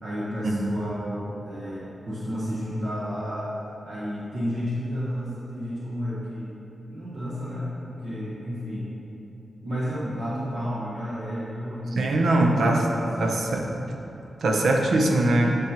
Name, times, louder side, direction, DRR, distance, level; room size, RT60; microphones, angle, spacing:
voice 1, 0.0-3.5 3.8-6.6 6.9-8.9 9.6-13.4 13.8-13.9, equal, 55° right, -8 dB, 1.1 m, -32 dB
voice 2, 12.0-12.9 13.2-13.6 14.4-15.6, right 2 dB, 85° right, 1 dB, 0.7 m, -21 dB
9.0 x 5.4 x 2.9 m, 2.8 s
wide cardioid pair, 120°, 0 cm